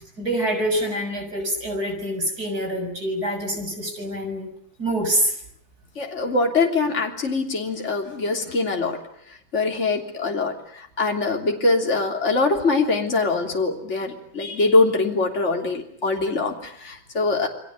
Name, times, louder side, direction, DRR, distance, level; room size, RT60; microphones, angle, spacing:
voice 1, 0.2-4.5 4.8-5.4, right 1 dB, 50° right, 5 dB, 7.4 m, -25 dB
voice 2, 6.0-9.0 9.5-17.5, left 3 dB, 35° left, 2 dB, 3.5 m, -23 dB
29.5 x 22.5 x 8.2 m, 0.68 s
omnidirectional pair, 2.1 m